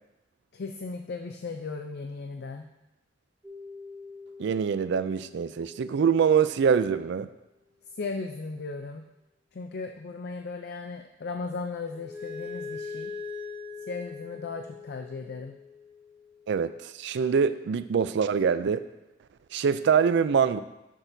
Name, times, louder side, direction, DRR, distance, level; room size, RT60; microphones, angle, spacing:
voice 1, 0.5-2.7 7.9-9.1 9.5-13.1 13.8-15.6, left 4 dB, 55° left, 5 dB, 0.4 m, -36 dB
sound 1, 3.4-6.3 11.9-16.8, left 4 dB, 10° right, 0.6 m, -42 dB
voice 2, 4.4-7.3 16.5-18.8 19.5-20.6, right 6 dB, 65° right, 13 dB, 0.4 m, -24 dB
9.6 x 6.3 x 2.7 m, 0.93 s
head